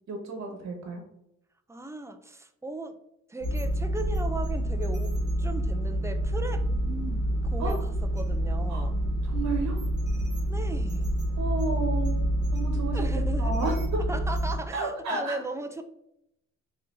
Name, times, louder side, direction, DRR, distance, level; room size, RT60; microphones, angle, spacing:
voice 1, 0.1-1.0 6.8-7.2 7.6-7.8 8.7-8.9 9.2-9.8 11.4-12.1 12.5-13.0 13.4-13.8 14.7-15.4, right 3 dB, 65° right, 2 dB, 1.4 m, -32 dB
voice 2, 1.7-3.0 3.3-5.1 5.4-6.7 7.4-9.0 10.5-11.1 12.9-13.6 14.1-15.8, right 2 dB, 10° right, 8 dB, 0.4 m, -37 dB
sound 1, 3.4-14.6, right 1 dB, 35° right, 1.5 m, -28 dB
4.1 x 3.7 x 2.6 m, 0.80 s
cardioid pair, 90°, 30 cm